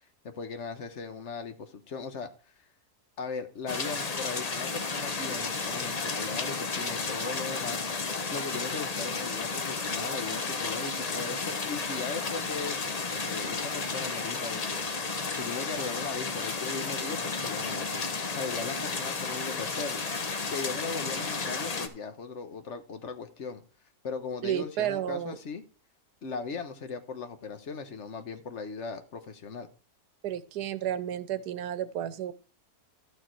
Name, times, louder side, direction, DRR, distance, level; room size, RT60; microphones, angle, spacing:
voice 1, 0.2-2.5 3.2-7.8 8.3-14.8 15.3-17.9 18.3-20.1 20.5-23.6 24.0-25.6 26.2-29.7, left 4 dB, 50° left, 9 dB, 1.3 m, -38 dB
sound 1, 3.7-21.9, left 4 dB, 35° left, 0.7 m, -33 dB
voice 2, 24.4-25.4 30.2-32.3, right 11 dB, 90° right, 15 dB, 1.3 m, -32 dB
12.0 x 6.5 x 4.6 m, 0.36 s
omnidirectional pair, 1.7 m